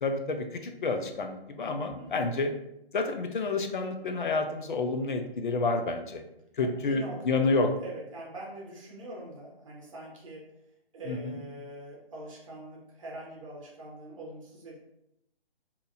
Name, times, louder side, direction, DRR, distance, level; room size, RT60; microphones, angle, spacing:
voice 1, 0.0-2.5 2.9-6.2 6.6-7.7 11.1-11.4, left 3 dB, 55° left, 6 dB, 0.5 m, -29 dB
voice 2, 2.0-2.3 6.6-10.5 10.9-14.8, right 1 dB, 30° right, -2 dB, 1.0 m, -43 dB
2.8 x 2.6 x 3.8 m, 0.84 s
hypercardioid pair, 160°, 31 cm